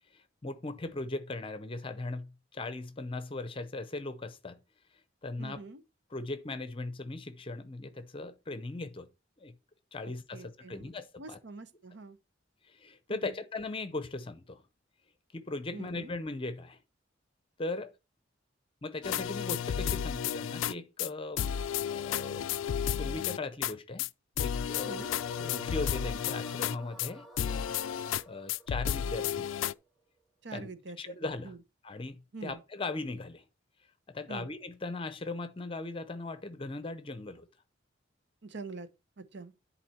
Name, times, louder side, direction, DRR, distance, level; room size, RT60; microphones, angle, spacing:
voice 1, 0.1-4.6 5.2-5.6 6.1-9.1 9.4-9.5 9.9-11.4 12.6-14.6 15.3-16.8 17.6-17.9 18.8-21.5 21.8-22.5 23.0-24.1 24.4-25.1 25.4-27.3 28.2-29.7 30.5-30.7 31.0-31.6 31.8-33.4 34.1-37.5, left 2 dB, 30° left, 0.7 m, -38 dB
voice 2, 5.4-5.8 10.3-10.9 11.2-12.2 13.1-13.3 15.7-16.1 24.8-25.1 30.4-31.1 31.4-31.6 32.3-32.6 34.3-34.5 38.4-38.9 39.2-39.5, right 3 dB, 65° right, 0.9 m, -44 dB
sound 1, 19.0-20.7 21.0-21.1 21.4-23.7 24.0-24.1 24.4-27.1 27.4-28.2 28.5-29.7, left 9 dB, 85° left, 0.3 m, -32 dB
sound 2, 24.7-29.9, equal, ahead, 1.4 m, -50 dB
11.0 x 4.2 x 4.3 m
head